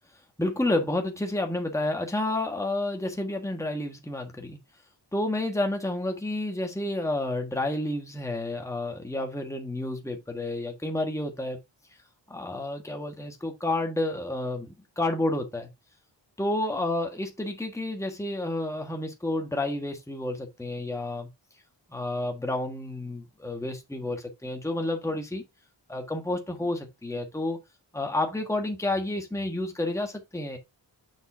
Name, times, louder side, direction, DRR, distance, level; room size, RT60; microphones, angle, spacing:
voice 1, 0.4-4.6 5.1-11.6 12.3-15.7 16.4-21.3 21.9-25.4 25.9-27.6 27.9-30.6, left 2 dB, 5° left, 1.6 m, -30 dB
7.0 x 6.5 x 2.7 m
wide cardioid pair, 130°, 45 cm